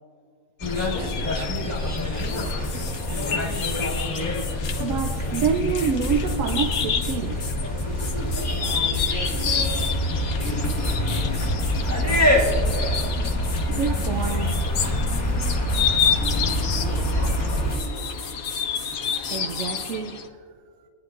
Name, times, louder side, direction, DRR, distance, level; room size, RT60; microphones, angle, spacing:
sound 1, 0.6-20.3, left 7 dB, 90° left, 1.2 m, -31 dB
sound 2, 0.6-17.8, left 1 dB, 10° left, 1.2 m, -25 dB
voice 1, 0.8-3.9 8.5-11.5 11.8-12.6 16.2-18.2, right 1 dB, 90° right, 3.4 m, -39 dB
sound 3, 2.2-9.9 10.4-11.8 12.1-20.0, left 5 dB, 50° left, 1.1 m, -38 dB
voice 2, 4.8-8.2 11.7-12.3 13.7-14.7 19.3-20.2, right 6 dB, 70° right, 1.0 m, -28 dB
23.0 x 9.7 x 2.5 m
omnidirectional pair, 1.5 m